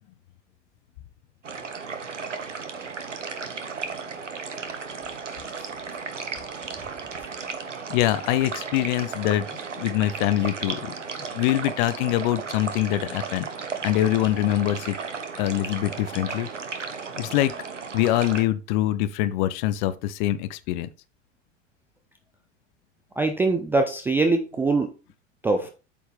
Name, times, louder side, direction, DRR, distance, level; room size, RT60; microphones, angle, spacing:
sound 1, 1.4-18.4, right 5 dB, 80° right, 1.0 m, -35 dB
voice 1, 7.9-9.5 9.8-10.9 11.3-13.5 13.8-15.0 15.4-16.5 17.2-17.5 17.9-20.9, left 14 dB, 40° left, 0.6 m, -24 dB
voice 2, 23.2-24.9 25.4-25.7, right 3 dB, 5° right, 0.3 m, -22 dB
8.3 x 4.4 x 3.4 m
figure-of-eight pair, 85°, 37 cm